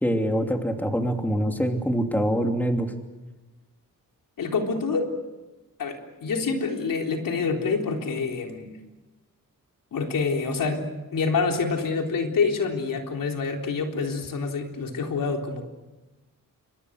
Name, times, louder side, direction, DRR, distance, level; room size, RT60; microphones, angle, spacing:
voice 1, 0.0-2.9, equal, 5° left, 4 dB, 2.9 m, -24 dB
voice 2, 4.4-5.2 5.8-8.7 9.9-10.9 11.1-15.6, left 4 dB, 75° left, 3 dB, 3.9 m, -27 dB
28.5 x 24.5 x 6.5 m, 1.1 s
wide cardioid pair, 115°, 33 cm